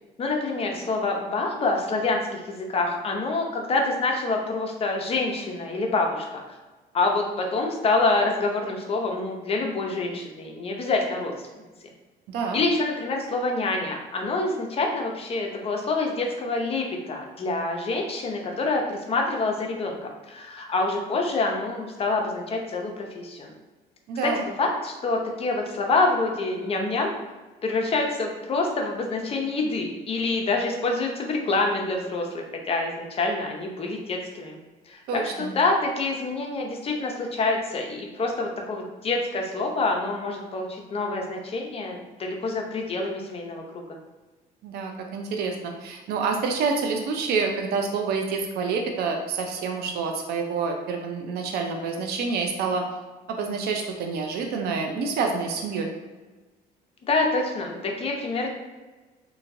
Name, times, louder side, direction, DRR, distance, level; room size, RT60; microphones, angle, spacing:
voice 1, 0.2-6.4 6.9-11.5 12.5-23.5 24.2-27.1 27.6-34.6 34.9-43.8 57.1-58.5, left 3 dB, 35° left, 1 dB, 0.6 m, -26 dB
voice 2, 12.3-12.6 24.1-24.5 35.1-35.5 44.6-52.8 53.3-55.9, right 4 dB, 70° right, 3 dB, 0.4 m, -28 dB
3.0 x 2.6 x 2.5 m, 1.2 s
cardioid pair, 110°, 17 cm